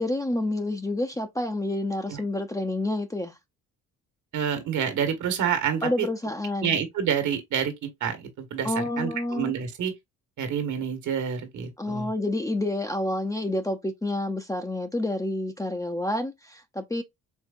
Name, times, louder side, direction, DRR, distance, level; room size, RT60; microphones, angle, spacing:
voice 1, 0.0-3.4 5.8-6.8 8.6-9.5 11.8-17.0, left 1 dB, 10° left, 0.6 m, -29 dB
voice 2, 4.3-6.1 6.6-9.9 10.4-12.1, right 8 dB, 60° right, 1.4 m, -28 dB
4.5 x 3.3 x 2.5 m
cardioid pair, 85°, 33 cm